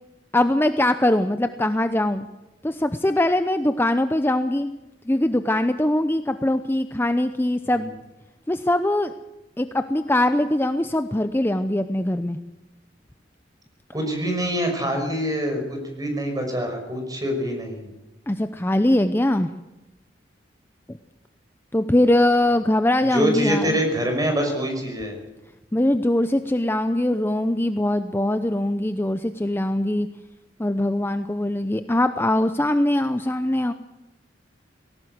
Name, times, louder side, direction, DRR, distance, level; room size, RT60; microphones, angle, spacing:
voice 1, 0.3-2.3 2.6-4.7 5.1-7.9 8.5-9.1 9.6-12.4 18.3-19.5 21.7-23.8 25.7-30.1 30.6-33.7, left 1 dB, 15° left, 9 dB, 0.7 m, -22 dB
voice 2, 13.9-17.9 23.1-25.2, equal, 20° right, 3 dB, 5.8 m, -25 dB
19.5 x 18.0 x 8.0 m, 1.0 s
head